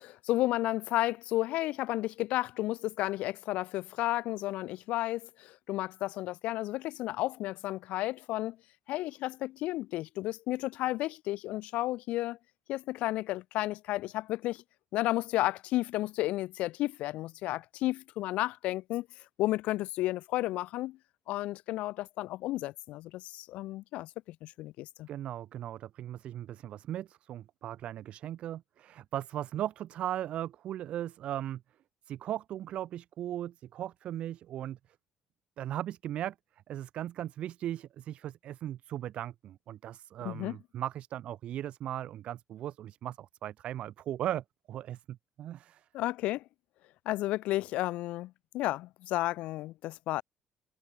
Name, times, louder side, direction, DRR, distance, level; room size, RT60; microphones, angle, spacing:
voice 1, 0.0-8.6 8.9-12.4 12.7-14.6 14.9-19.1 19.4-21.0 21.3-25.1 40.2-40.6 45.9-46.4 47.1-50.2, left 17 dB, 80° left, 0.3 m, -32 dB
voice 2, 25.1-31.6 32.1-34.8 35.6-36.3 36.7-45.9, right 12 dB, 60° right, 0.6 m, -38 dB
cardioid pair, 115°, 2 cm